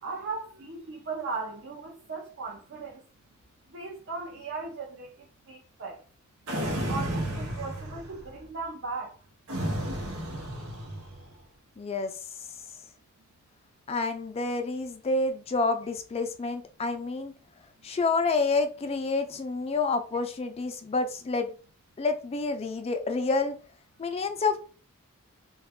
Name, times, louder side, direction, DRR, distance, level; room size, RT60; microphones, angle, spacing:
voice 1, 0.0-3.0 3.7-6.0 6.6-9.2, right 4 dB, 55° right, 0.6 m, -37 dB
sound 1, 6.5-8.3 9.5-11.3, right 1 dB, 90° right, 0.9 m, -32 dB
voice 2, 11.8-12.1 13.9-17.3 17.8-21.5 22.0-23.5 24.0-24.6, left 3 dB, 30° left, 0.4 m, -28 dB
3.3 x 2.3 x 3.5 m
head